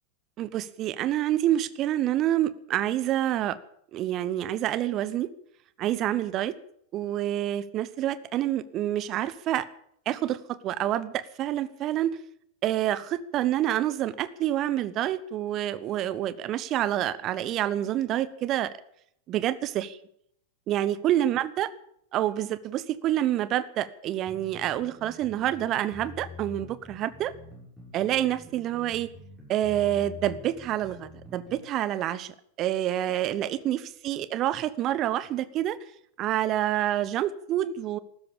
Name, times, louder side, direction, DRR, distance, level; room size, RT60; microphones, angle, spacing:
voice 1, 0.4-3.6 3.9-5.3 5.8-6.6 6.9-9.7 10.1-12.2 12.6-18.7 19.3-20.0 20.7-21.7 22.1-27.3 27.9-29.1 29.5-32.3 32.6-35.8 36.2-38.0, right 12 dB, 35° right, 17 dB, 1.0 m, -27 dB
sound 1, 24.3-31.6, left 3 dB, 10° right, 7.5 m, -46 dB
15.5 x 13.0 x 7.0 m, 0.69 s
figure-of-eight pair, 90°, 0 cm